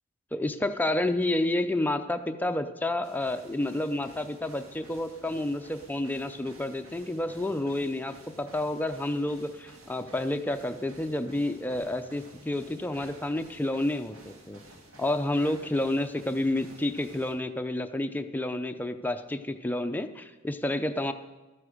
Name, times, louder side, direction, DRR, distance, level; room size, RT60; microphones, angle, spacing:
voice 1, 0.3-14.6 15.0-21.1, left 1 dB, 10° left, 7 dB, 0.5 m, -30 dB
sound 1, 3.0-17.4, right 1 dB, 70° right, 1.7 m, -52 dB
13.0 x 9.5 x 5.0 m, 1.2 s
head